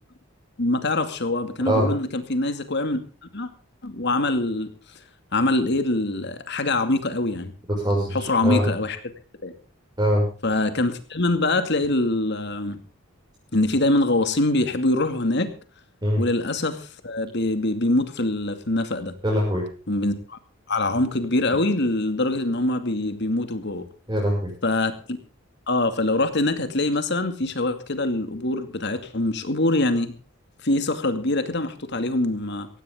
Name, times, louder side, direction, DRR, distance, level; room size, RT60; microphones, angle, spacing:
voice 1, 0.6-3.0 3.3-3.5 3.8-4.7 5.3-7.5 8.1-9.0 9.4-9.5 10.4-12.8 13.5-15.5 16.2-19.1 19.9-20.4 20.7-23.8 24.6-25.2 25.7-30.1 30.6-32.7, left 2 dB, 60° left, 9 dB, 2.4 m, -24 dB
voice 2, 7.7-8.7 10.0-10.3 16.0-16.2 19.2-19.6 24.1-24.5, equal, 20° right, -3 dB, 6.2 m, -22 dB
16.5 x 16.5 x 3.8 m, 0.35 s
head